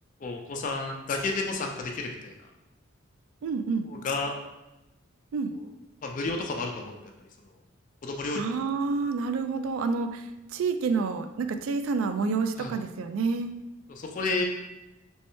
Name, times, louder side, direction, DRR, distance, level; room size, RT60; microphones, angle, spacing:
voice 1, 0.2-2.3 3.9-4.3 6.0-7.0 8.0-8.4 12.6-12.7 13.9-14.4, left 3 dB, 40° left, 2 dB, 0.3 m, -31 dB
voice 2, 3.4-3.9 5.3-5.5 8.3-13.5, right 4 dB, 85° right, 8 dB, 0.3 m, -28 dB
3.2 x 3.1 x 3.0 m, 0.99 s
head